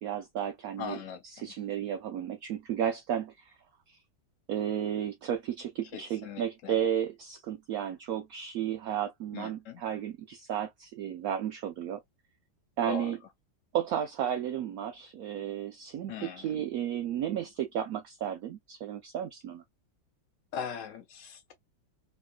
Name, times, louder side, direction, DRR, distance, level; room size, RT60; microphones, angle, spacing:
voice 1, 0.0-1.0 1.2-3.5 3.9-4.0 4.5-12.0 12.8-13.2 13.7-19.6, right 9 dB, 75° right, 0.8 m, -33 dB
voice 2, 0.8-1.5 5.9-6.8 9.3-9.8 12.9-13.1 16.1-16.5 20.5-21.5, left 7 dB, 90° left, 0.6 m, -40 dB
3.1 x 3.0 x 2.2 m
omnidirectional pair, 2.0 m